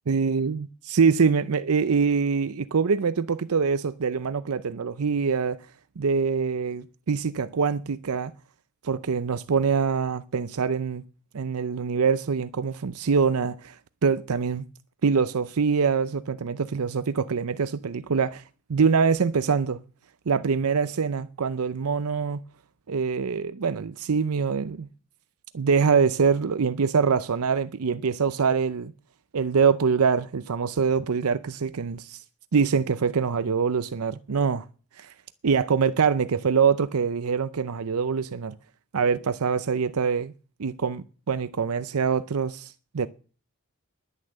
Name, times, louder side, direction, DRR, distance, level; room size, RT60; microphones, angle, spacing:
voice 1, 0.1-5.6 6.0-8.3 8.8-11.0 11.3-14.7 15.0-18.4 18.7-19.8 20.3-22.4 22.9-24.9 25.5-28.9 29.3-32.2 32.5-34.6 35.0-35.1 35.4-38.5 38.9-40.3 40.6-43.1, right 5 dB, 80° right, 0.6 m, -24 dB
11.0 x 9.8 x 7.8 m
head